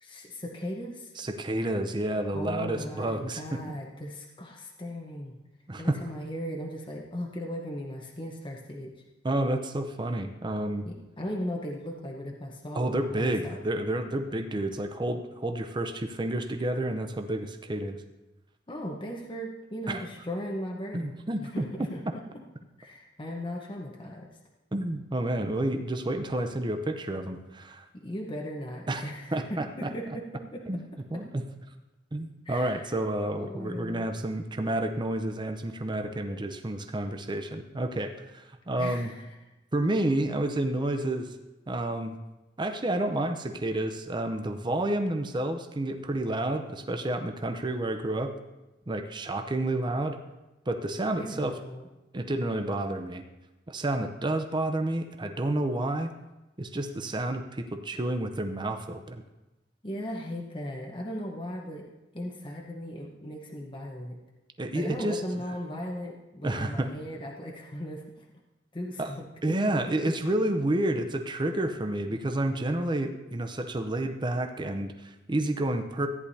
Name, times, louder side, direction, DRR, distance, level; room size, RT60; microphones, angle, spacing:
voice 1, 0.0-1.1 2.3-5.4 5.8-8.9 10.8-13.6 18.7-22.2 22.8-24.3 28.0-30.2 30.5-30.6 31.1-31.2 32.4-33.0 33.4-34.1 38.8-39.3 51.2-51.9 59.8-61.9 62.1-64.2 64.7-68.2 68.7-69.6, equal, 25° left, -1 dB, 1.0 m, -37 dB
voice 2, 1.2-3.6 5.7-6.0 9.2-10.9 12.7-18.0 19.9-20.0 20.9-21.7 24.7-27.8 28.9-29.0 29.3-29.9 30.7-30.8 31.1-31.4 32.1-39.1 39.7-41.3 41.7-42.2 42.6-48.3 48.9-50.2 50.7-51.6 52.1-53.2 53.7-56.1 56.6-59.2 64.6-65.4 66.4-66.9 69.0-69.1 69.4-76.1, right 1 dB, 25° right, 6 dB, 0.6 m, -30 dB
14.5 x 10.0 x 2.8 m, 1.0 s
head